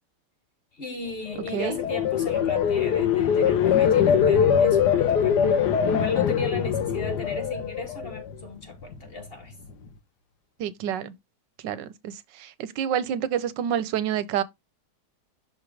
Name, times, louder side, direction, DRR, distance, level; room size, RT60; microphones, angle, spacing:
voice 1, 0.7-9.5, left 3 dB, 40° left, 1.1 m, -36 dB
sound 1, 1.2-8.4 8.8-9.2, left 8 dB, 70° left, 1.4 m, -22 dB
voice 2, 10.6-11.1 11.6-14.4, right 9 dB, 85° right, 1.3 m, -28 dB
6.2 x 3.2 x 4.8 m
omnidirectional pair, 1.9 m